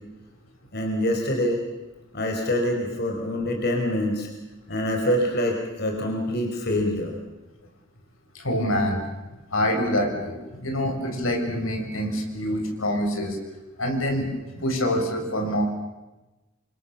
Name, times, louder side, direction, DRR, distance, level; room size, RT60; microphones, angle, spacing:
voice 1, 0.7-1.6 2.1-4.3 4.7-7.2, left 1 dB, 55° left, 2 dB, 4.7 m, -25 dB
voice 2, 8.3-9.1 9.5-13.4 13.8-14.3 14.5-15.6, equal, 85° left, 3 dB, 7.1 m, -26 dB
29.0 x 26.5 x 7.2 m, 1.1 s
head